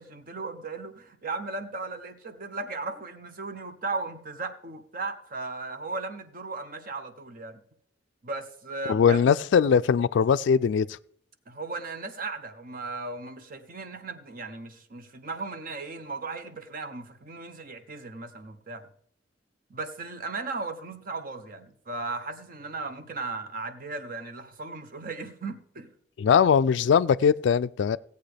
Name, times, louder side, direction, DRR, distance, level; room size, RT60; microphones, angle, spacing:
voice 1, 0.0-7.6 8.2-9.2 11.5-18.9 19.7-25.9, right 3 dB, 50° right, 0.9 m, -36 dB
voice 2, 8.9-10.9 26.2-28.0, left 7 dB, 70° left, 0.3 m, -21 dB
16.5 x 8.1 x 3.4 m
head